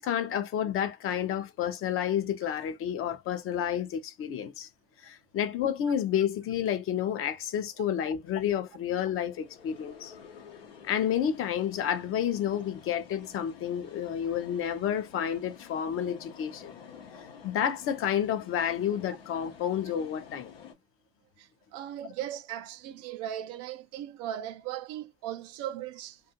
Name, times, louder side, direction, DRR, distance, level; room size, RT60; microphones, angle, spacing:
voice 1, 0.0-4.7 5.0-10.1 10.8-16.8 17.4-20.5, left 9 dB, 45° left, 0.6 m, -30 dB
sound 1, 6.7-20.7, left 7 dB, 90° left, 0.8 m, -51 dB
voice 2, 21.4-26.2, right 11 dB, 60° right, 0.4 m, -38 dB
2.4 x 2.4 x 2.7 m
hypercardioid pair, 75°, 29 cm